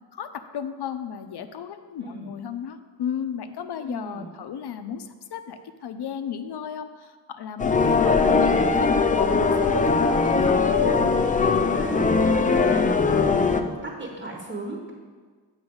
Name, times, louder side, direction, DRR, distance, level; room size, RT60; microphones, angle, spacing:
voice 1, 0.1-10.6, left 8 dB, 65° left, 8 dB, 0.7 m, -34 dB
voice 2, 3.8-4.3 11.5-14.9, right 2 dB, 25° right, -1 dB, 1.3 m, -35 dB
sound 1, 7.6-13.6, left 4 dB, 20° left, 0.4 m, -20 dB
7.9 x 4.8 x 7.1 m, 1.5 s
wide cardioid pair, 125°, 42 cm